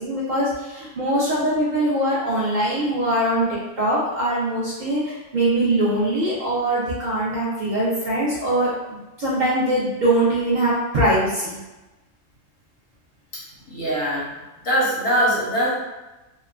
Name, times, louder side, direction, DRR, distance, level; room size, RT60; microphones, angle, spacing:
voice 1, 0.0-11.6, right 1 dB, 55° right, -8 dB, 0.5 m, -22 dB
voice 2, 13.7-14.3 14.6-15.7, equal, 85° left, -7 dB, 1.5 m, -22 dB
3.0 x 2.0 x 2.3 m, 1.1 s
omnidirectional pair, 1.4 m